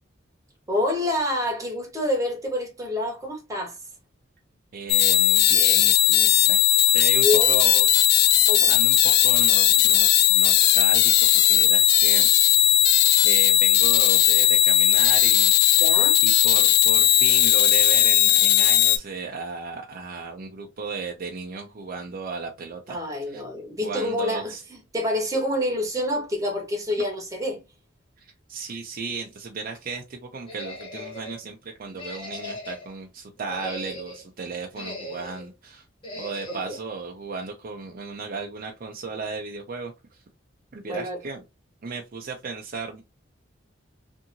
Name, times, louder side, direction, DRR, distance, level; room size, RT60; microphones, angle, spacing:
voice 1, 0.7-3.8 7.2-7.6 8.5-8.7 15.8-16.2 22.9-24.5 24.9-27.6 36.5-36.8 40.8-41.2, left 1 dB, 15° right, 1.0 m, -27 dB
voice 2, 4.7-7.9 8.2-12.5 13.2-15.9 16.2-23.0 23.3-23.4 23.8-24.6 28.2-35.9 36.2-40.2 40.7-41.4 41.8-43.0, right 4 dB, 45° right, 0.5 m, -35 dB
sound 1, 4.9-19.0, left 13 dB, 55° left, 0.3 m, -18 dB
sound 2, 30.5-31.4 31.9-32.9 33.4-34.3 34.7-35.5 36.0-36.7, equal, 25° left, 1.0 m, -38 dB
2.7 x 2.6 x 2.5 m
head